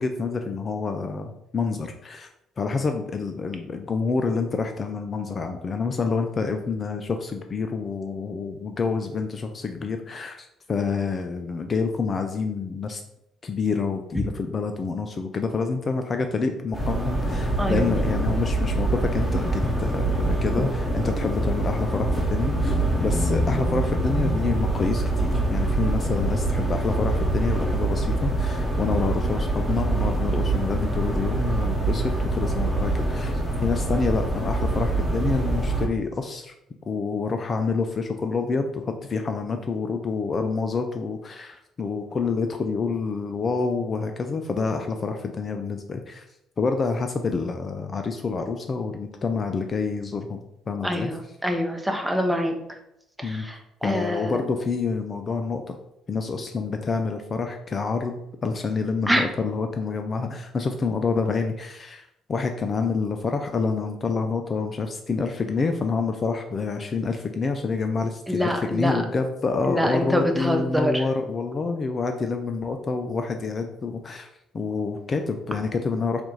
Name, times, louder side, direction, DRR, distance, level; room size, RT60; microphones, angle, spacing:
voice 1, 0.0-2.3 2.6-13.0 13.4-20.7 20.9-36.5 36.9-46.2 46.6-50.4 50.7-51.1 53.2-53.5 53.8-55.8 56.1-74.3 74.5-76.2, left 4 dB, 40° left, 6 dB, 0.4 m, -27 dB
sound 1, 16.7-35.9, right 2 dB, 10° left, 1.6 m, -25 dB
voice 2, 17.6-17.9 19.6-19.7 50.8-52.8 53.2-54.4 59.1-59.3 68.3-69.0 69.7-71.1, equal, 5° right, 4 dB, 0.8 m, -25 dB
4.3 x 2.5 x 4.0 m, 0.82 s
figure-of-eight pair, 50°, 0 cm